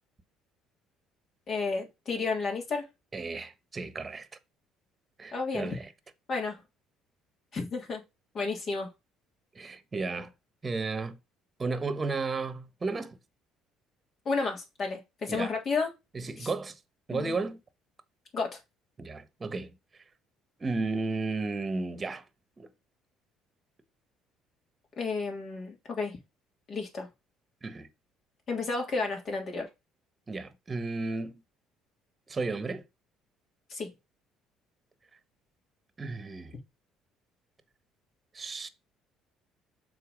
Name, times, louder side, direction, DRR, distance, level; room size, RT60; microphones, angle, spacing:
voice 1, 1.5-2.9 5.3-5.8 6.3-6.6 7.5-8.0 8.3-8.9 14.2-15.9 16.4-16.5 17.1-17.4 18.3-18.6 25.0-26.2 26.7-27.1 28.5-29.7 33.7-33.9, left 4 dB, 50° left, 3.2 m, -32 dB
voice 2, 3.1-4.3 5.2-5.9 9.5-10.3 10.6-11.2 11.6-13.2 15.3-15.5 16.1-16.8 17.1-17.6 19.0-19.7 20.6-22.2 22.6-22.7 27.6-27.9 30.3-31.4 32.3-32.8 36.0-36.6 38.3-38.7, right 3 dB, 30° right, 1.2 m, -33 dB
6.8 x 4.0 x 5.1 m
supercardioid pair, 75°, 0 cm